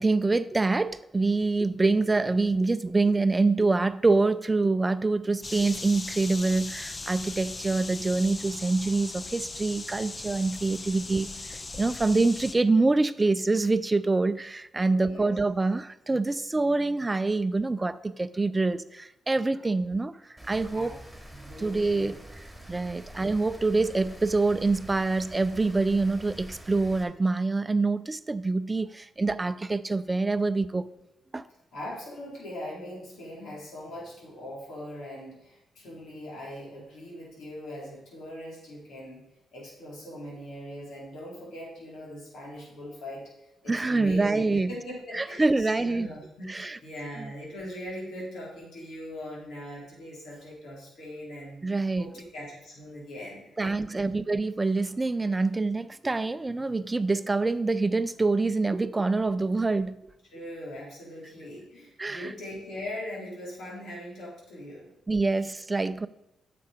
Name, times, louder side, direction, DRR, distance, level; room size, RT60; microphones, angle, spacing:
voice 1, 0.0-20.9 21.6-22.2 22.7-30.9 31.3-31.4 43.7-44.7 45.1-46.1 46.5-46.8 47.2-47.3 51.6-52.1 53.6-60.0 62.0-62.3 65.1-66.1, right 3 dB, 25° right, 13 dB, 0.5 m, -26 dB
sound 1, 5.4-12.6, left 3 dB, 35° left, 0.7 m, -39 dB
voice 2, 14.8-15.4 20.7-21.0 21.3-22.1 31.7-39.2 39.5-51.6 52.0-54.1 60.3-64.9, left 1 dB, 80° left, -4 dB, 4.4 m, -41 dB
Rain, 20.4-27.0, right 1 dB, 5° right, 2.5 m, -46 dB
9.7 x 6.8 x 5.3 m, 0.88 s
cardioid pair, 70°, 0 cm